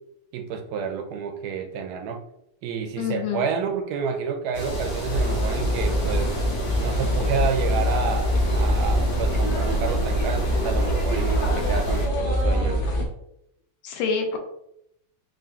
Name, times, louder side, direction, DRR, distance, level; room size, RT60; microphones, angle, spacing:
voice 1, 0.3-2.2 2.6-6.4 6.8-12.9, right 6 dB, 75° right, 6 dB, 0.9 m, -30 dB
voice 2, 3.0-3.5 13.8-14.4, left 5 dB, 80° left, 3 dB, 1.4 m, -26 dB
sound 1, 4.5-12.1, right 1 dB, 20° left, 0.9 m, -31 dB
sound 2, 5.1-13.0, equal, 50° left, 0.6 m, -24 dB
3.8 x 2.4 x 3.5 m, 0.77 s
omnidirectional pair, 2.1 m